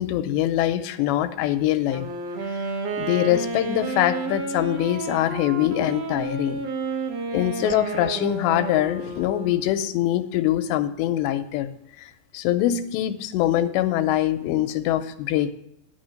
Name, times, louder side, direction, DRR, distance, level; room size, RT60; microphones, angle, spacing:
voice 1, 0.0-2.1 3.0-6.6 7.3-11.7 12.0-12.1 12.3-15.5, left 12 dB, 85° left, 10 dB, 2.8 m, -23 dB
Wind instrument woodwind instrument, 1.8-9.9, right 3 dB, 70° right, 1.5 m, -31 dB
11.5 x 6.2 x 6.4 m, 0.78 s
omnidirectional pair, 5.0 m